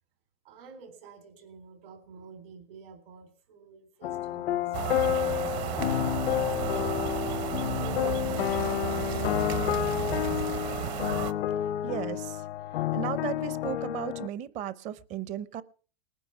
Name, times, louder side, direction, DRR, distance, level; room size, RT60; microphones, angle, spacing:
voice 1, 0.4-7.2 7.8-10.8, right 5 dB, 70° right, 8 dB, 3.8 m, -50 dB
sound 1, 4.0-14.3, left 12 dB, 75° left, 0.7 m, -30 dB
sound 2, 4.7-11.3, right 12 dB, 45° right, 0.9 m, -33 dB
sound 3, 8.2-11.2, right 10 dB, 90° right, 1.4 m, -50 dB
voice 2, 11.8-12.4 12.9-15.6, right 10 dB, 25° right, 17 dB, 0.6 m, -35 dB
20.0 x 10.0 x 5.9 m, 0.41 s
supercardioid pair, 150°, 30 cm